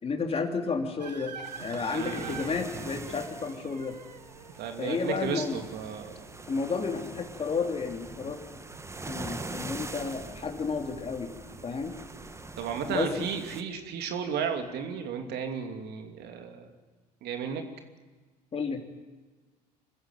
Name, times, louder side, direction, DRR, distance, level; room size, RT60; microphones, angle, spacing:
voice 1, 0.0-3.9 4.8-5.6 6.5-8.5 9.1-11.3 11.6-11.9 12.9-13.3 18.5-18.8, left 4 dB, 30° left, 4 dB, 3.1 m, -32 dB
sound 1, 1.0-9.2, right 6 dB, 85° right, 1.2 m, -47 dB
sound 2, 1.4-13.6, right 3 dB, 15° right, 1.5 m, -43 dB
voice 2, 1.9-2.4 4.6-6.2 12.6-16.7 17.2-17.6, right 7 dB, 50° right, 5 dB, 2.8 m, -34 dB
sound 3, 8.9-15.0, right 3 dB, 30° right, 5.5 m, -54 dB
26.0 x 16.0 x 9.3 m, 1.3 s
figure-of-eight pair, 65°, 21 cm